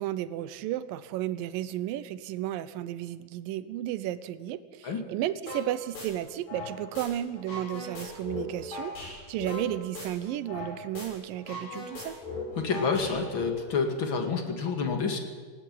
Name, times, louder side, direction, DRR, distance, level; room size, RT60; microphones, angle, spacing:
voice 1, 0.0-9.0 9.3-12.2, right 13 dB, 85° right, 15 dB, 2.5 m, -33 dB
sound 1, 5.5-5.7 5.9-7.1 7.3-10.7 10.9-11.1 11.4-13.5, left 3 dB, 80° left, 9.0 m, -38 dB
voice 2, 12.6-15.2, left 5 dB, 40° left, 5 dB, 2.5 m, -28 dB
19.0 x 17.0 x 9.2 m, 1.5 s
omnidirectional pair, 3.9 m